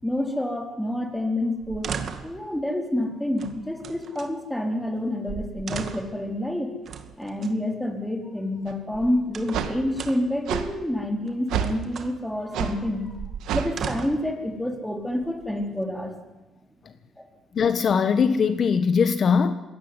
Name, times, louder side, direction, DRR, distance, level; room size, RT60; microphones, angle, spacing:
voice 1, 0.0-1.9 2.2-6.7 7.2-13.1 13.5-16.1 17.2-17.3, left 1 dB, 5° left, 4 dB, 4.3 m, -28 dB
sound 1, 1.6-2.4 3.4-4.3 5.0-5.1 5.3-6.2 6.9-7.5 8.7-9.7 9.9-10.4 11.3-12.1 12.9-14.3 15.1-15.8, right 6 dB, 55° right, 2.2 m, -37 dB
sound 2, 8.7-8.8 9.5-9.7 10.5-10.7 11.5-11.8 12.5-12.8 13.4-13.7, right 9 dB, 85° right, 2.0 m, -27 dB
voice 2, 17.5-19.5, left 6 dB, 50° left, 10 dB, 1.2 m, -21 dB
22.0 x 17.5 x 9.9 m, 1.1 s
cardioid pair, 90°, 0 cm